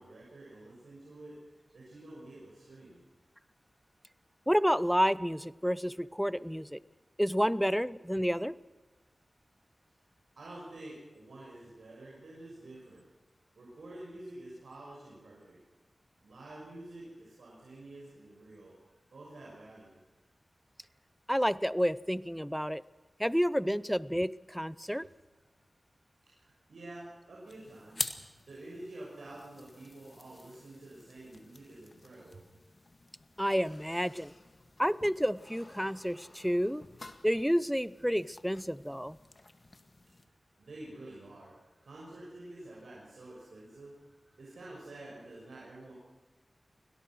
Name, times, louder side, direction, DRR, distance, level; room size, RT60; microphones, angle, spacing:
voice 1, 0.0-1.4 1.7-3.0 9.9-10.0 10.4-13.0 13.5-15.6 16.2-18.8 19.1-20.0 26.2-28.1 28.5-32.4 40.6-41.6 41.8-44.0 44.4-45.9, right 1 dB, 85° right, -5 dB, 6.4 m, -49 dB
voice 2, 4.5-6.8 7.2-8.6 21.3-22.8 23.2-25.1 33.4-34.3 34.8-36.8 37.2-39.2, equal, ahead, 18 dB, 0.7 m, -30 dB
sound 1, 27.5-40.3, left 2 dB, 45° left, 1.9 m, -47 dB
24.0 x 18.0 x 6.3 m, 1.2 s
cardioid pair, 45°, 0 cm